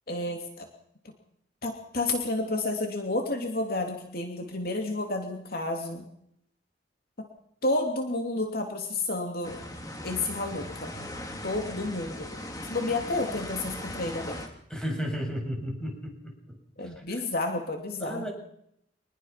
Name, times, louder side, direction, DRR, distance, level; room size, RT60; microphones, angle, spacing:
voice 1, 0.1-0.7 1.6-6.0 7.2-7.3 7.6-9.6 10.0-10.9 11.4-12.3 12.7-14.4 16.8-18.3, left 2 dB, 55° left, 3 dB, 2.9 m, -30 dB
sound 1, 9.4-14.5, left 1 dB, 20° left, 3.3 m, -39 dB
voice 2, 14.7-16.3 16.8-17.2 18.0-18.3, equal, 5° left, 1 dB, 7.5 m, -33 dB
25.5 x 20.5 x 5.9 m, 0.72 s
head